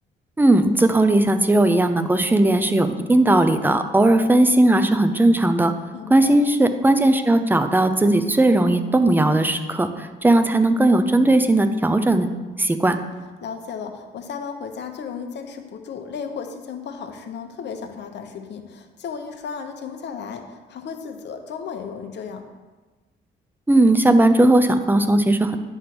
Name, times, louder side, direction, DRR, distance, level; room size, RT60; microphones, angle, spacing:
voice 1, 0.4-5.7 6.1-12.3 12.6-13.0 23.7-25.6, right 1 dB, 10° right, 8 dB, 0.6 m, -17 dB
voice 2, 5.9-6.4 13.4-22.4, left 6 dB, 60° left, 6 dB, 0.9 m, -34 dB
9.3 x 3.5 x 6.0 m, 1.3 s
cardioid pair, 90°, 20 cm